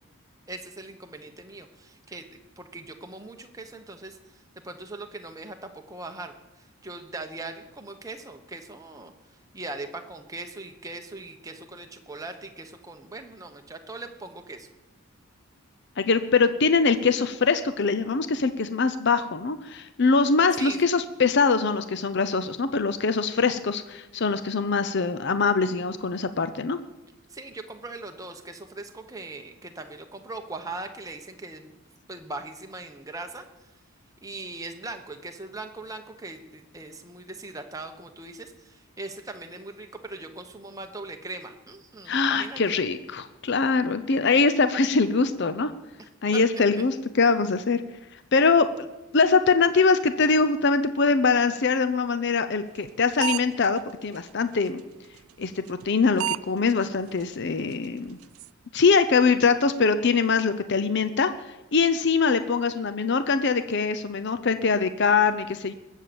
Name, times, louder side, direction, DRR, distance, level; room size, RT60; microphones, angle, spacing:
voice 1, 0.5-4.2 4.5-9.1 9.5-14.7 20.6-20.8 27.3-31.7 32.1-33.4 34.2-42.6 46.3-46.4, right 2 dB, 15° right, 5 dB, 1.1 m, -40 dB
voice 2, 16.0-26.8 42.1-45.7 46.2-47.8 48.3-48.9 49.1-54.8 55.4-58.2 58.7-61.3 61.7-65.7, left 4 dB, 50° left, 11 dB, 0.6 m, -23 dB
sound 1, 52.8-52.9 53.2-53.6 54.1-54.2 55.7-55.9 56.2-56.4 56.7-56.8 57.2-57.3 57.7-57.8 58.0-58.5, right 13 dB, 75° right, 0.4 m, -28 dB
20.5 x 7.4 x 7.0 m, 1.0 s
head